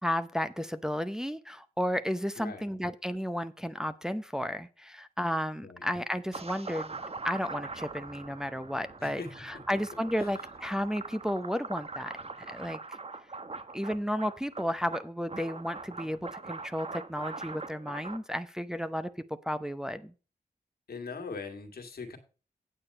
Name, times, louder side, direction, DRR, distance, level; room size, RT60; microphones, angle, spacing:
voice 1, 0.0-6.9 7.2-12.2 12.5-12.8 13.7-19.1 19.4-20.1, equal, 5° right, 9 dB, 0.7 m, -33 dB
voice 2, 2.4-2.7 5.6-5.8 9.0-9.3 10.2-10.3 20.9-22.2, left 4 dB, 75° left, 5 dB, 1.9 m, -41 dB
sound 1, 6.3-18.2, right 3 dB, 40° right, 1.1 m, -42 dB
8.8 x 7.0 x 5.4 m, 0.35 s
cardioid pair, 55°, 16 cm